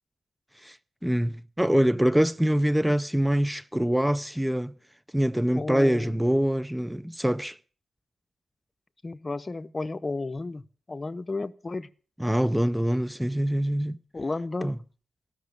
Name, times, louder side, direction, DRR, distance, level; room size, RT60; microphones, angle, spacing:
voice 1, 1.0-4.7 5.1-7.6 12.2-14.0 14.6-14.7, equal, 5° right, 0.6 m, -24 dB
voice 2, 5.5-6.2 9.0-10.6 10.9-11.9 14.1-14.7, left 3 dB, 35° left, 0.8 m, -32 dB
17.5 x 6.2 x 8.4 m
supercardioid pair, 50°, 0 cm